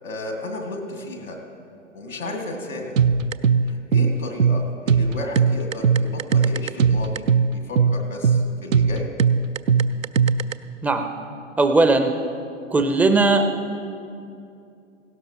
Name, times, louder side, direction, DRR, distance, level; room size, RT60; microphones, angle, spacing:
voice 1, 0.0-1.4 1.9-3.0 3.7-9.1, left 1 dB, 90° left, 1 dB, 2.3 m, -33 dB
sound 1, 3.0-10.5, right 6 dB, 90° right, 0.5 m, -19 dB
voice 2, 11.6-12.1 12.7-13.4, right 3 dB, 5° right, 6 dB, 0.4 m, -18 dB
18.0 x 17.0 x 2.9 m, 2.5 s
figure-of-eight pair, 105°, 38 cm